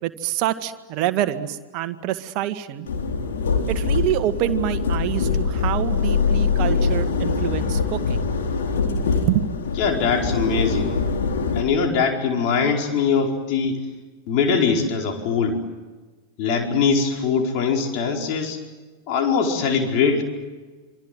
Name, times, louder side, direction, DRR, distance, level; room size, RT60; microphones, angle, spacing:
voice 1, 0.0-2.9 3.7-8.3 9.3-9.5, right 13 dB, 40° right, 9 dB, 1.9 m, -26 dB
sound 1, 2.9-11.6, left 4 dB, 60° left, 3.9 m, -23 dB
voice 2, 9.8-11.0 11.5-13.8 14.3-15.6 16.4-18.6 19.1-20.2, left 5 dB, 45° left, 2 dB, 4.7 m, -22 dB
28.0 x 25.5 x 7.8 m, 1.3 s
figure-of-eight pair, 90°, 0 cm